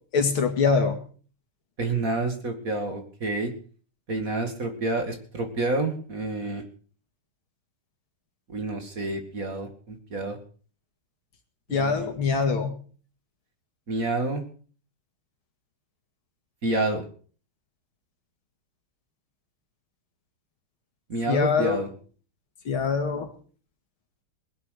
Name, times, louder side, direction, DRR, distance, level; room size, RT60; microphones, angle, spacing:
voice 1, 0.1-1.0 11.7-12.7 21.3-21.8 22.7-23.3, left 5 dB, 70° left, 5 dB, 2.9 m, -23 dB
voice 2, 1.8-3.5 4.1-6.6 8.5-10.4 11.7-12.1 13.9-14.4 16.6-17.0 21.1-21.9, right 2 dB, 40° right, 5 dB, 2.5 m, -28 dB
21.0 x 8.0 x 6.5 m, 0.43 s
omnidirectional pair, 2.4 m